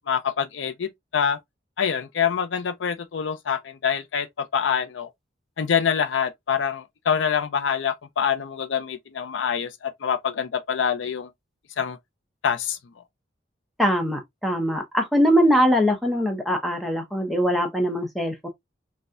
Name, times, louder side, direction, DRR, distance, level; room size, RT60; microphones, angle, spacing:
voice 1, 0.1-1.4 1.8-5.1 5.6-11.3 11.8-12.0 12.4-12.8, left 7 dB, 80° left, 0.5 m, -25 dB
voice 2, 13.8-18.5, equal, ahead, 0.8 m, -22 dB
4.1 x 2.2 x 2.4 m
head